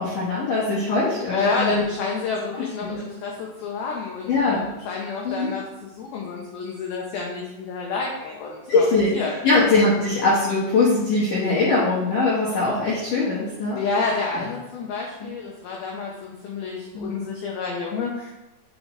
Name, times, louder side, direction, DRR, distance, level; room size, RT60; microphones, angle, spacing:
voice 1, 0.0-1.8 2.5-3.0 4.3-4.7 5.2-5.5 8.7-9.1 9.4-13.8 14.3-14.4 15.2-15.4 16.9-17.1, left 3 dB, 65° left, -7 dB, 2.0 m, -22 dB
voice 2, 1.3-8.9 9.1-9.4 13.8-18.3, left 4 dB, 90° left, -1 dB, 2.1 m, -29 dB
8.4 x 5.1 x 3.2 m, 0.97 s
omnidirectional pair, 5.5 m